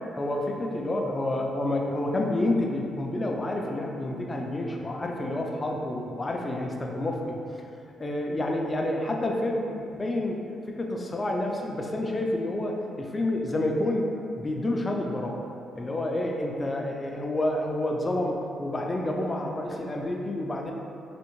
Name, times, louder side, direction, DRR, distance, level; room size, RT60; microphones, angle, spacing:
voice 1, 0.2-7.7 8.0-14.1 14.4-15.4 15.7-20.7, left 1 dB, 25° left, 1 dB, 0.4 m, -29 dB
3.5 x 2.5 x 3.0 m, 2.6 s
cardioid pair, 90°, 0 cm